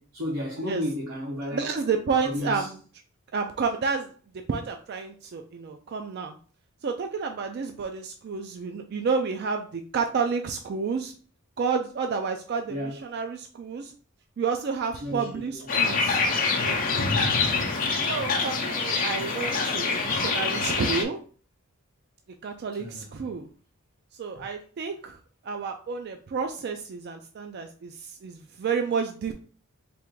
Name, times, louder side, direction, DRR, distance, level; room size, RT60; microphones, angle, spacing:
voice 1, 0.0-1.7 2.2-2.7 12.7-13.0 15.0-15.7 18.0-18.2 22.8-23.3 24.3-24.4, left 1 dB, 90° right, 1.3 m, -33 dB
voice 2, 1.5-2.8 3.3-4.1 4.5-6.3 6.8-11.1 11.6-13.9 14.4-16.2 16.6-17.1 18.0-21.2 22.4-23.5 24.2-25.2 25.4-29.3, right 5 dB, 50° right, 0.3 m, -30 dB
sound 1, 15.7-21.0, left 4 dB, 40° left, 0.7 m, -25 dB
3.5 x 2.5 x 4.5 m
head